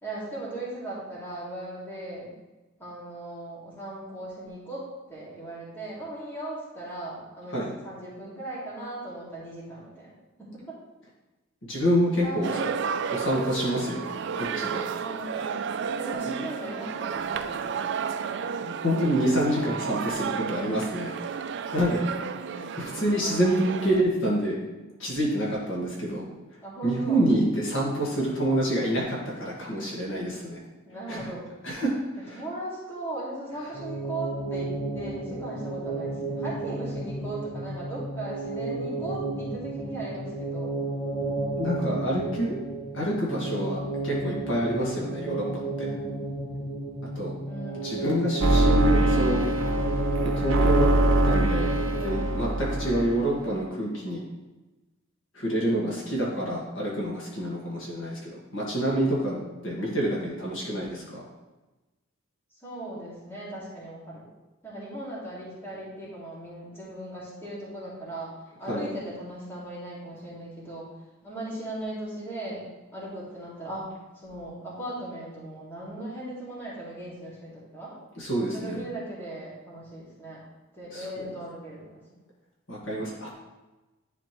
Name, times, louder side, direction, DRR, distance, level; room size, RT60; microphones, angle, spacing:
voice 1, 0.0-2.3 2.8-10.1 10.4-10.8 12.2-12.8 13.7-14.2 14.9-18.1 22.0-22.9 26.6-27.2 30.8-31.5 32.3-40.9 47.4-48.3 62.6-64.3 64.6-68.3 68.6-70.9 71.2-72.7 72.9-78.0 78.4-80.5 80.7-82.0, right 1 dB, 10° left, -8 dB, 2.1 m, -38 dB
voice 2, 11.7-12.5 13.1-14.8 18.6-21.1 21.7-22.0 22.8-24.6 25.0-26.2 26.8-30.6 31.1-31.3 31.6-31.9 32.3-32.4 41.6-42.5 42.9-45.4 47.2-47.3 47.8-49.4 50.4-50.9 51.2-51.7 51.9-54.2 55.3-61.2 68.7-68.9 78.2-78.8 80.9-81.1 82.7-83.3, right 1 dB, 70° left, -5 dB, 1.8 m, -27 dB
sound 1, 12.4-24.0, right 6 dB, 60° right, 0.3 m, -32 dB
sound 2, 33.7-52.5, right 2 dB, 45° left, 0.8 m, -32 dB
sound 3, 48.4-53.3, right 1 dB, 75° right, 0.8 m, -23 dB
10.0 x 4.3 x 3.1 m, 1.1 s
head